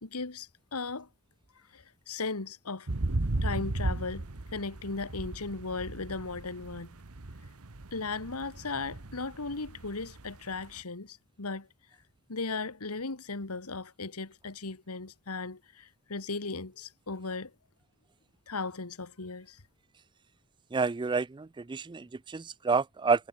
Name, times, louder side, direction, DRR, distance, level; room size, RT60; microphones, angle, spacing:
voice 1, 0.0-1.1 1.7-2.9 3.4-4.3 4.5-7.0 7.9-11.7 12.3-17.5 18.5-19.6, left 3 dB, 80° left, 1.7 m, -37 dB
sound 1, 2.9-10.8, right 2 dB, 75° right, 1.4 m, -36 dB
voice 2, 20.7-23.3, right 4 dB, 20° right, 0.4 m, -29 dB
head